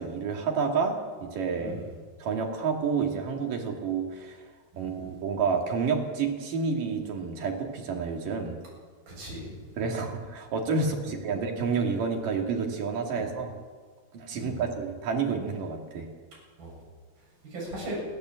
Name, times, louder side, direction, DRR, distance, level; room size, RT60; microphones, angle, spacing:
voice 1, 0.0-1.7 2.2-4.4 4.8-8.6 9.8-13.5 14.1-16.1, right 5 dB, 65° right, 2 dB, 3.9 m, -29 dB
voice 2, 1.5-1.9 4.7-5.0 9.1-9.9 13.2-13.3 14.3-14.6 16.6-16.8 17.4-18.0, right 1 dB, 85° right, -4 dB, 9.9 m, -39 dB
29.5 x 12.0 x 7.7 m, 1.5 s
omnidirectional pair, 4.1 m